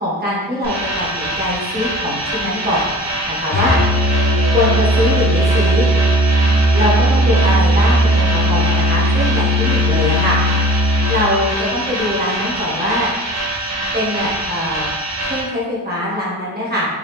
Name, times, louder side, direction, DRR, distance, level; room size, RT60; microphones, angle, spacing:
voice 1, 0.0-2.9 3.2-3.8 4.5-5.8 6.7-10.4 11.1-13.1 13.9-14.9 15.2-16.9, left 1 dB, 20° right, -6 dB, 1.3 m, -22 dB
sound 1, 0.6-15.4, right 1 dB, 40° right, 0.9 m, -24 dB
Musical instrument, 3.5-11.3, right 1 dB, 35° left, 0.7 m, -16 dB
3.9 x 2.7 x 3.2 m, 1.2 s
wide cardioid pair, 125°, 46 cm